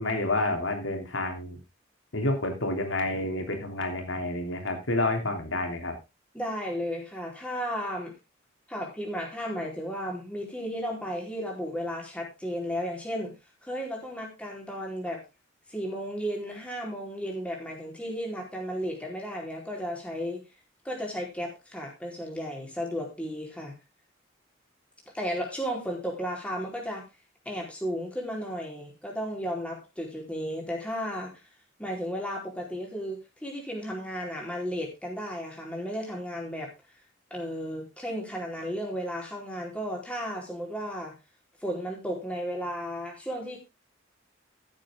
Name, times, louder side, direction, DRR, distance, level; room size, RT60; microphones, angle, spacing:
voice 1, 0.0-1.6 2.1-5.9, left 2 dB, 80° left, 4 dB, 3.3 m, -29 dB
voice 2, 6.3-8.1 8.7-13.3 13.6-15.2 15.7-20.4 20.8-23.7 25.1-27.0 27.4-31.3 31.8-36.7 37.3-41.1 41.6-43.6, equal, 5° left, -1 dB, 4.3 m, -34 dB
16.0 x 7.5 x 3.7 m, 0.26 s
head